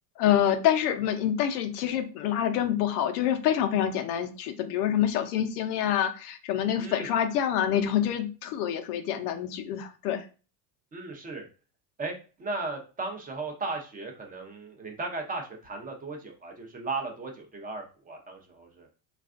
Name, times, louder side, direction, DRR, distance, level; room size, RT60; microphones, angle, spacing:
voice 1, 0.2-10.3, left 10 dB, 75° left, 8 dB, 0.6 m, -26 dB
voice 2, 6.8-7.1 10.9-11.5 12.0-18.9, right 3 dB, 20° right, 2 dB, 0.5 m, -36 dB
3.2 x 2.4 x 2.4 m, 0.35 s
supercardioid pair, 120°, 46 cm